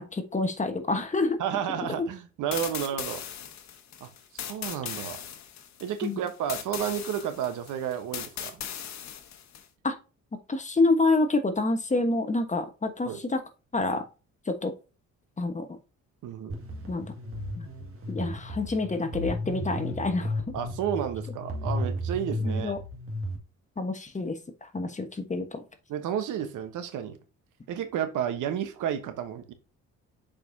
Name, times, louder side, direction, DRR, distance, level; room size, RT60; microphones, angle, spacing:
voice 1, 0.0-1.4 6.0-6.2 9.8-9.9 10.5-13.4 13.7-14.0 14.5-14.7 15.4-15.7 16.9-17.1 17.6-17.7 18.1-20.5 22.4-22.8 23.8-25.6, left 3 dB, 25° left, 1.2 m, -27 dB
voice 2, 1.4-3.3 4.0-5.2 5.8-8.6 13.0-13.2 16.2-16.6 20.5-22.7 25.9-27.2 27.7-29.5, right 9 dB, 85° right, 1.1 m, -32 dB
sound 1, 2.5-9.7, left 9 dB, 65° left, 1.2 m, -38 dB
sound 2, 16.5-23.4, equal, 45° right, 2.0 m, -34 dB
6.6 x 5.2 x 2.7 m
cardioid pair, 90°, 30 cm